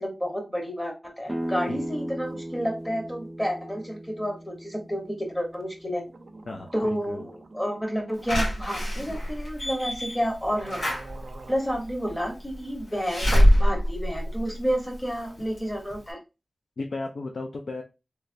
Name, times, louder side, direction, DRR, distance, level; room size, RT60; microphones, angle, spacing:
voice 1, 0.0-6.1 6.7-10.8 11.5-16.2, equal, 10° left, 3 dB, 1.1 m, -30 dB
sound 1, 1.3-6.9, right 1 dB, 10° right, 0.4 m, -37 dB
sound 2, 5.8-5.9 6.1-9.3 10.0-10.1 10.4-11.6, right 3 dB, 70° right, 0.5 m, -46 dB
voice 2, 6.5-7.3 16.8-17.8, left 3 dB, 65° left, 2 dB, 0.5 m, -35 dB
Slam / Alarm, 8.3-15.1 15.6-15.7 15.9-16.0, equal, 80° left, 1.7 m, -24 dB
3.3 x 3.2 x 2.5 m, 0.27 s
wide cardioid pair, 90°, 0 cm